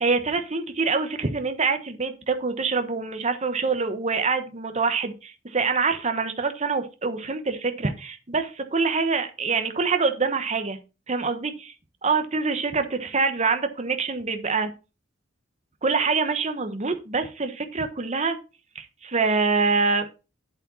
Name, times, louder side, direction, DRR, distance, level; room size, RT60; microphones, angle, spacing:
voice 1, 0.0-10.8 11.1-11.7 12.0-14.7 15.8-18.4 18.7-20.1, right 4 dB, 35° right, 8 dB, 1.2 m, -25 dB
8.7 x 7.8 x 4.2 m, 0.30 s
head